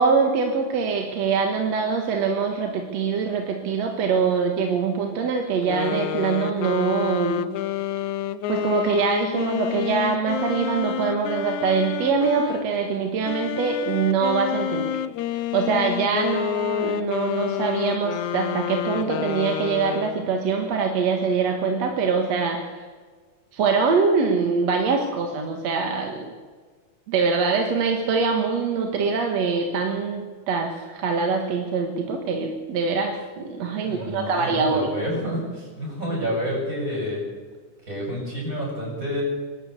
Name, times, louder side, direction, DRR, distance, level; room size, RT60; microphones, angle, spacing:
voice 1, 0.0-7.5 8.5-14.9 15.5-22.8 23.5-26.3 27.1-34.9, right 5 dB, 55° right, 3 dB, 2.4 m, -24 dB
sound 1, 5.6-12.7 13.2-20.4, left 11 dB, 75° left, 1.9 m, -29 dB
voice 2, 33.8-37.2 37.8-39.2, equal, 20° right, -3 dB, 8.2 m, -29 dB
24.5 x 12.5 x 8.2 m, 1.5 s
omnidirectional pair, 4.0 m